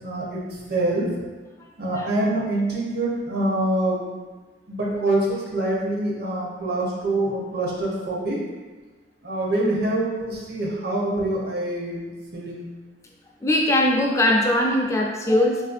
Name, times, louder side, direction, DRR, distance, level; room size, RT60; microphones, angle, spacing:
voice 1, 0.0-1.1 1.8-4.0 4.7-8.4 9.2-12.6, right 1 dB, 60° right, -3 dB, 0.7 m, -25 dB
voice 2, 13.4-15.6, left 1 dB, 15° left, -1 dB, 0.4 m, -20 dB
3.9 x 2.6 x 2.5 m, 1.3 s
head